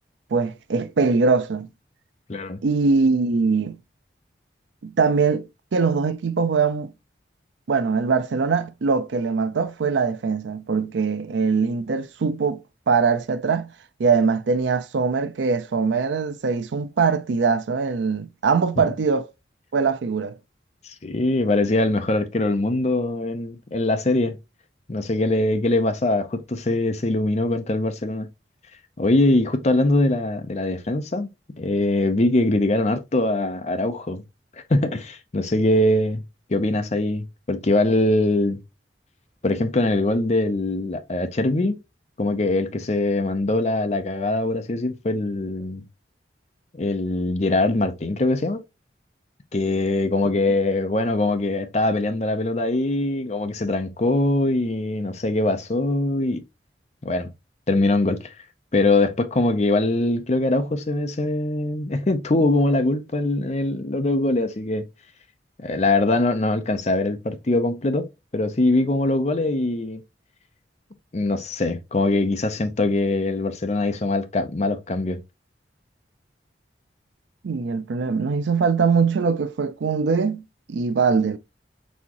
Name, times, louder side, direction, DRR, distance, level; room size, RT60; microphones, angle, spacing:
voice 1, 0.3-1.7 2.6-3.8 4.8-6.9 7.7-13.7 14.0-19.3 19.7-20.4 77.4-81.4, right 5 dB, 85° right, 0.5 m, -22 dB
voice 2, 2.3-2.6 20.8-24.4 24.9-28.3 29.0-31.3 31.6-34.2 34.7-36.2 36.5-38.6 39.4-41.8 42.2-45.8 46.7-48.6 49.5-56.4 57.0-57.3 57.7-58.3 58.7-64.9 65.6-70.0 71.1-75.2, left 2 dB, 40° left, 0.6 m, -22 dB
4.2 x 3.5 x 2.9 m
head